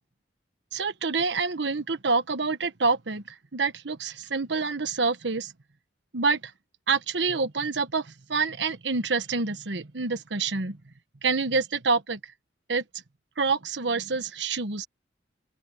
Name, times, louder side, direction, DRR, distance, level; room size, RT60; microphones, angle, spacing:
voice 1, 0.7-5.5 6.1-6.5 6.9-10.8 11.2-12.3 12.7-12.8 13.4-14.9, right 4 dB, 75° right, 1.3 m, -27 dB
open air
head